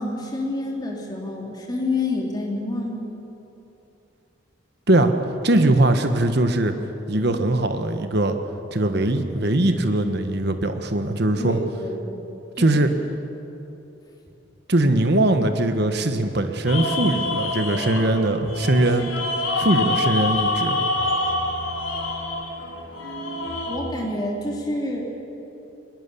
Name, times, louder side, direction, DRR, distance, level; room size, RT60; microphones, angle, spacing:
voice 1, 0.0-3.1 11.4-12.3 12.5-12.7 23.7-25.1, left 2 dB, 20° left, -1 dB, 3.1 m, -28 dB
voice 2, 5.4-6.7 7.1-8.4 8.7-11.6 12.6-12.9 14.7-19.1 19.6-20.8, right 1 dB, 55° right, 7 dB, 1.3 m, -21 dB
sound 1, 16.7-23.8, left 2 dB, 85° left, 3.1 m, -26 dB
21.0 x 21.0 x 7.0 m, 3.0 s
head